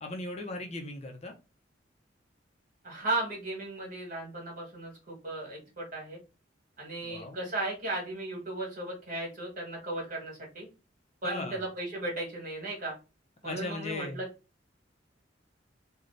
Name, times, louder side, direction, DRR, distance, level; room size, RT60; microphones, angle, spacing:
voice 1, 0.0-1.3 7.0-7.5 11.2-11.6 13.4-14.2, left 2 dB, 35° left, 4 dB, 0.7 m, -38 dB
voice 2, 2.8-6.2 6.8-10.7 11.2-13.0 13.4-14.3, right 2 dB, 45° right, -2 dB, 1.8 m, -36 dB
3.3 x 2.2 x 3.8 m, 0.29 s
head